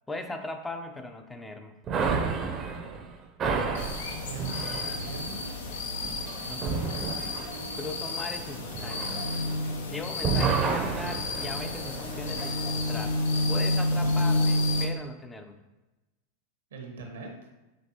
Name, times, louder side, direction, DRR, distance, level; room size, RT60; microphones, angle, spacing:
voice 1, 0.1-1.7 6.5-7.0 7.7-9.2 9.9-13.2 13.5-15.6, left 2 dB, 10° left, 6 dB, 0.5 m, -39 dB
sound 1, 1.9-9.9 10.2-12.5, right 5 dB, 35° right, 0.6 m, -31 dB
sound 2, 3.7-14.9, left 2 dB, 80° left, 0.7 m, -30 dB
voice 2, 4.2-5.7 6.7-7.4 14.0-14.1 16.7-17.3, right 4 dB, 85° right, 2 dB, 1.0 m, -42 dB
5.1 x 3.6 x 2.9 m, 1.1 s
hypercardioid pair, 110°, 0 cm